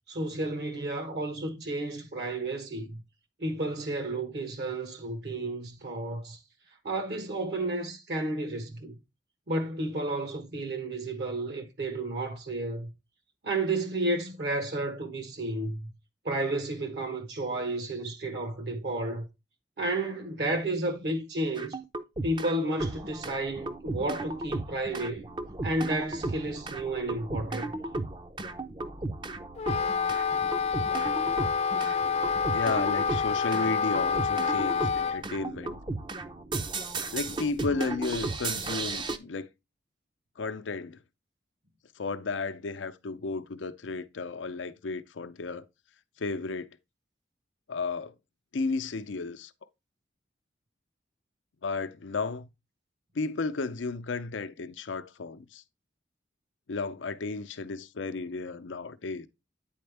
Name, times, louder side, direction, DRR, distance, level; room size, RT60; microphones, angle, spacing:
voice 1, 0.1-3.0 3.4-6.4 6.8-8.9 9.5-12.9 13.4-15.9 16.2-19.3 19.8-21.8 22.2-25.3 25.6-27.7, right 2 dB, 60° right, 1.1 m, -32 dB
sound 1, 21.5-22.5 22.8-39.2, right 2 dB, 25° right, 0.5 m, -35 dB
Wind instrument woodwind instrument, 29.6-35.2, left 6 dB, 35° left, 0.3 m, -28 dB
voice 2, 32.5-35.8 37.1-39.5 40.4-41.0 42.0-45.6 46.2-46.7 47.7-48.1 48.5-49.5 51.6-52.5 53.1-55.6 56.7-59.3, left 3 dB, 90° left, 0.6 m, -33 dB
9.4 x 4.3 x 3.3 m
head